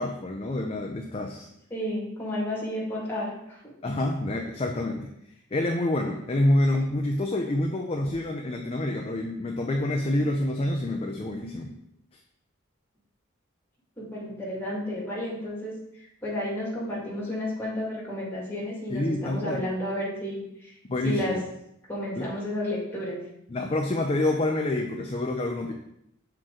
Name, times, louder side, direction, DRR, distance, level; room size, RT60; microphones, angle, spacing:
voice 1, 0.0-1.5 3.8-5.1 5.5-11.7 18.9-19.6 20.9-21.4 22.2-22.3 23.5-25.7, left 1 dB, 30° left, 2 dB, 0.5 m, -27 dB
voice 2, 1.7-3.7 14.0-20.7 21.0-21.4 21.9-23.2, left 1 dB, 10° left, -6 dB, 1.9 m, -32 dB
6.3 x 4.5 x 3.7 m, 0.79 s
head